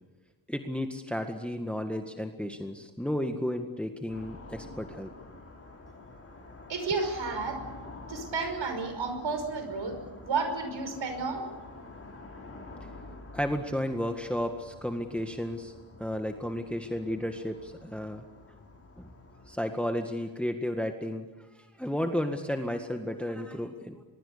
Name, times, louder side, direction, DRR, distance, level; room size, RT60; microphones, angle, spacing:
voice 1, 0.5-5.1 13.3-15.7 16.0-18.2 19.0-19.1 19.5-21.3 21.6-24.0, left 1 dB, 5° left, 5 dB, 1.8 m, -33 dB
sound 1, 4.1-19.6, left 2 dB, 30° left, 5.6 m, -48 dB
voice 2, 6.7-7.6 8.1-9.9 10.2-11.5, right 4 dB, 75° right, 7 dB, 5.7 m, -31 dB
23.5 x 23.0 x 6.8 m, 1.2 s
cardioid pair, 70°, 45 cm